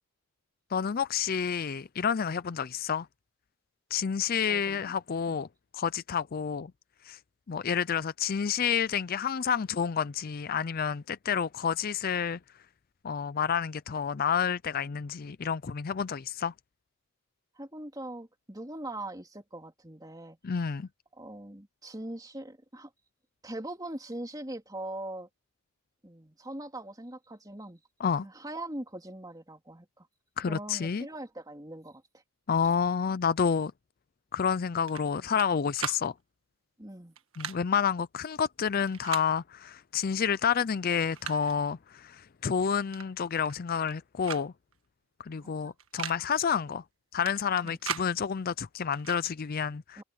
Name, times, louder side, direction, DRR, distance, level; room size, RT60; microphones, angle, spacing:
voice 1, 0.7-3.1 3.9-5.5 5.7-6.7 7.0-7.2 7.5-12.4 13.0-16.5 20.4-20.9 28.0-28.3 30.4-31.0 32.5-33.7 34.3-36.1 37.4-44.5 45.2-46.8 47.1-50.0, left 7 dB, 40° left, 0.4 m, -29 dB
voice 2, 4.5-4.9 5.3-5.4 17.5-20.7 21.1-22.9 23.4-25.3 26.0-27.8 28.2-30.1 30.5-32.2 36.8-37.1 45.4-45.7 47.6-47.8 50.0-50.1, right 1 dB, 15° right, 3.4 m, -41 dB
sound 1, 34.9-35.5 35.7-36.0 37.2-37.6 38.9-39.3 40.4-40.5 40.9-41.6 42.9-43.1 43.4-43.9 44.2-44.5 44.7-44.8 45.8-46.2 47.3-48.1 48.9-49.2, right 8 dB, 65° right, 1.6 m, -38 dB
head